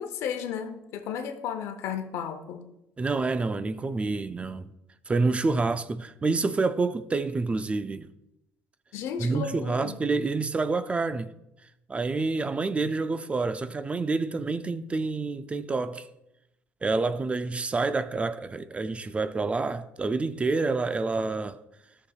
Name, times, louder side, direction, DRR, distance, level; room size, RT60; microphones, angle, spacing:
voice 1, 0.0-2.6 8.9-10.0, left 8 dB, 70° left, 0.8 m, -34 dB
voice 2, 3.0-4.7 5.1-8.1 9.2-11.3 11.9-16.1 16.8-21.6, right 3 dB, 25° right, 0.4 m, -28 dB
11.5 x 6.5 x 2.4 m
supercardioid pair, 80°, 5 cm